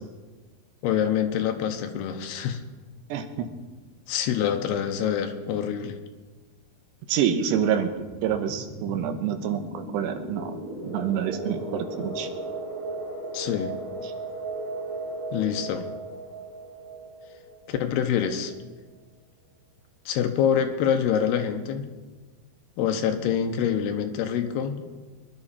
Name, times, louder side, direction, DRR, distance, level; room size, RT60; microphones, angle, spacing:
voice 1, 0.8-2.6 4.1-6.0 13.3-13.7 15.3-15.9 17.7-18.5 20.1-21.9 22.8-24.8, left 8 dB, 80° left, 7 dB, 2.8 m, -26 dB
voice 2, 3.1-3.5 7.1-10.5 10.8-12.3, right 8 dB, 90° right, 7 dB, 3.2 m, -27 dB
sound 1, 8.0-18.4, right 2 dB, 35° right, 5.5 m, -36 dB
23.0 x 11.0 x 4.3 m, 1.3 s
omnidirectional pair, 4.8 m